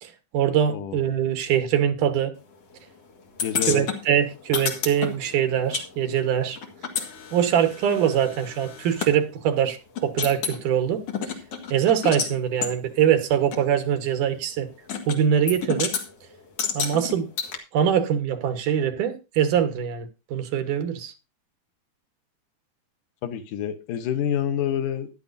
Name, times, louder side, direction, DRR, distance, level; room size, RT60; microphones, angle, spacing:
voice 1, 0.0-2.3 3.6-6.6 7.3-11.0 11.7-14.7 15.1-16.0 16.7-17.3 17.7-21.1, right 9 dB, 80° right, 2.9 m, -23 dB
voice 2, 0.7-1.0 3.4-3.9 23.2-25.1, left 9 dB, 80° left, 2.7 m, -27 dB
sound 1, 3.4-5.9 6.1-9.1 9.6-9.7 10.0-10.6 11.1-12.3 12.6-12.7 13.5-13.6 14.9-15.2 15.5-16.1 16.6-17.6, left 6 dB, 55° left, 2.7 m, -30 dB
15.0 x 11.5 x 2.7 m
omnidirectional pair, 3.6 m